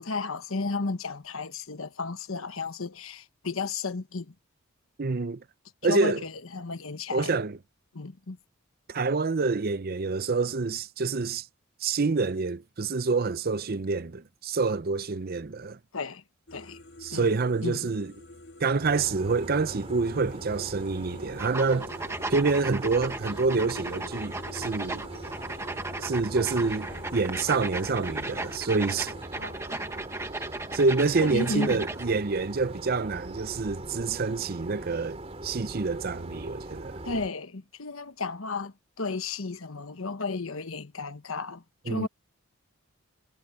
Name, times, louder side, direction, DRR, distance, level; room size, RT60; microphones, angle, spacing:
voice 1, 0.0-4.3 5.9-7.3 7.9-8.4 15.9-16.2 16.5-16.8 17.1-17.4 17.6-17.9 29.3-29.8 31.2-31.8 37.0-42.1, left 3 dB, 70° left, 1.2 m, -33 dB
voice 2, 5.0-5.4 5.8-6.2 7.1-7.6 8.9-11.5 11.8-15.8 17.0-18.1 18.6-21.9 22.3-25.0 26.0-29.1 30.7-37.0 41.9-42.1, right 4 dB, 45° right, 0.6 m, -27 dB
sound 1, 16.5-29.3, left 1 dB, 55° left, 2.0 m, -48 dB
sound 2, 18.8-37.3, right 1 dB, 30° right, 3.4 m, -41 dB
sound 3, 21.4-32.1, right 2 dB, 15° right, 1.4 m, -36 dB
head